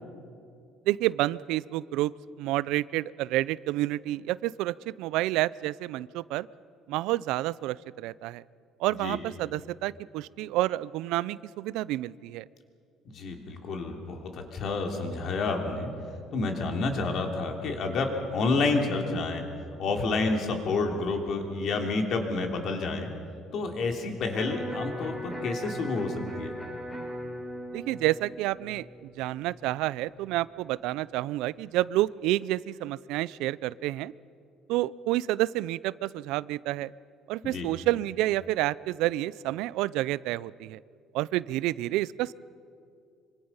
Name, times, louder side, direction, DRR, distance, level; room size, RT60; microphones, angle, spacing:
voice 1, 0.9-2.1 2.4-6.5 6.9-8.4 8.8-12.4 27.7-28.9 29.2-34.1 34.7-36.9 37.3-40.8 41.1-42.3, right 16 dB, 80° right, 20 dB, 0.4 m, -29 dB
voice 2, 13.0-15.9 16.3-19.4 19.8-23.1 23.5-26.5 37.4-37.7, left 3 dB, 50° left, 3 dB, 3.1 m, -29 dB
Electric guitar, 24.3-30.4, equal, 10° left, 3.8 m, -39 dB
25.5 x 25.5 x 5.6 m, 2.4 s
cardioid pair, 150°, 0 cm